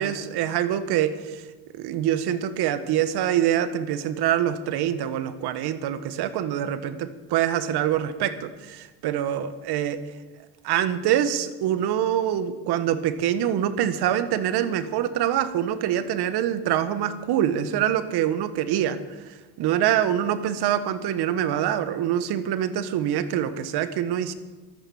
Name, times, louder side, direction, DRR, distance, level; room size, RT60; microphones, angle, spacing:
voice 1, 0.0-1.4 1.7-10.0 10.6-19.0 19.6-24.3, right 10 dB, 60° right, 13 dB, 1.5 m, -25 dB
14.5 x 12.5 x 7.2 m, 1.3 s
supercardioid pair, 100°, 45 cm